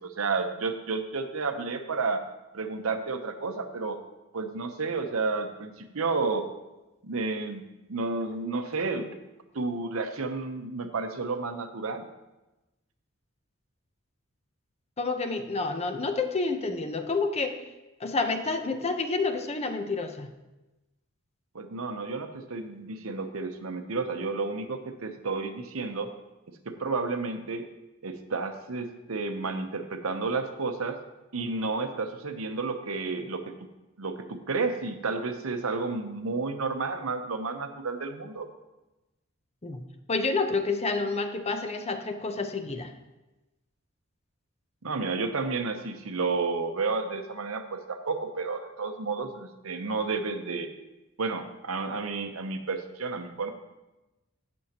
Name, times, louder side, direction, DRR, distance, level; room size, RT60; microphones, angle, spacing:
voice 1, 0.0-2.2 2.5-4.0 4.3-6.5 7.0-7.6 7.9-9.1 9.5-12.1 21.5-26.1 26.6-27.7 28.0-31.0 31.3-33.7 34.0-38.5 44.8-50.7 51.2-53.5, right 4 dB, 80° right, 7 dB, 0.9 m, -31 dB
voice 2, 15.0-17.6 18.0-20.3 39.6-39.8 40.1-42.9, left 3 dB, 30° left, 7 dB, 0.7 m, -29 dB
17.0 x 6.3 x 2.9 m, 1.0 s
head